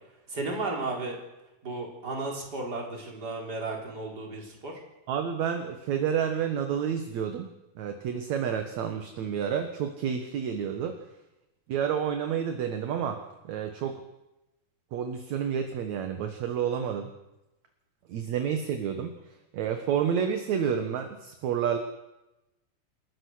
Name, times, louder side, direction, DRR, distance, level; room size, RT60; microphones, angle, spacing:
voice 1, 0.3-1.2 1.6-4.7, right 2 dB, 25° right, -1 dB, 4.5 m, -34 dB
voice 2, 5.1-7.5 7.8-11.0 11.7-13.2 13.4-14.0 14.9-17.1 18.1-19.1 19.5-21.8, right 8 dB, 60° right, 6 dB, 2.3 m, -29 dB
28.0 x 14.5 x 6.4 m, 0.97 s
omnidirectional pair, 4.1 m